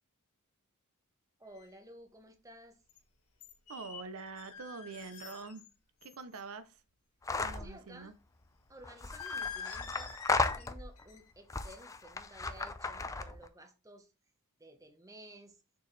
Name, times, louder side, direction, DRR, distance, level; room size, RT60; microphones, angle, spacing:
voice 1, 1.4-2.8 7.5-8.1 8.7-14.1 14.6-15.6, right 1 dB, 15° right, 1.0 m, -54 dB
sound 1, 1.6-1.7 2.9-3.0 3.4-5.7 6.0-6.4 9.1-10.7 11.0-11.3 11.6-12.0, left 6 dB, 85° left, 1.7 m, -45 dB
voice 2, 3.7-5.6 6.0-6.8 7.4-8.1, right 4 dB, 75° right, 0.6 m, -45 dB
sound 2, 7.2-7.7 8.8-11.0 11.5-13.5, left 3 dB, 15° left, 0.4 m, -35 dB
6.5 x 4.6 x 3.2 m
head